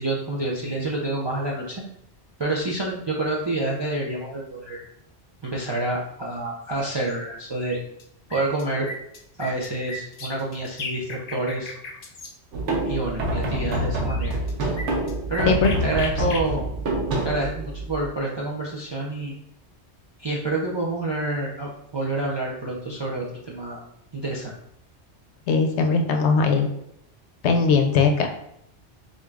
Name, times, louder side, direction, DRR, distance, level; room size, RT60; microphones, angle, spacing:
voice 1, 0.0-1.8 2.4-4.8 5.4-7.8 8.3-8.9 9.4-11.7 12.8-14.4 15.3-16.7 17.2-19.4 20.2-23.8 24.1-24.5, right 2 dB, 40° right, -4 dB, 0.3 m, -28 dB
sound 1, 7.1-7.2 7.6-8.0 8.3-12.3 13.7-13.8 14.0-16.4, left 2 dB, 55° left, 0.4 m, -36 dB
sound 2, 12.5-18.1, right 1 dB, 85° right, 1.1 m, -27 dB
voice 2, 25.5-26.7 27.4-28.3, left 4 dB, 75° left, 4 dB, 0.9 m, -19 dB
5.1 x 2.6 x 2.3 m, 0.77 s
omnidirectional pair, 1.2 m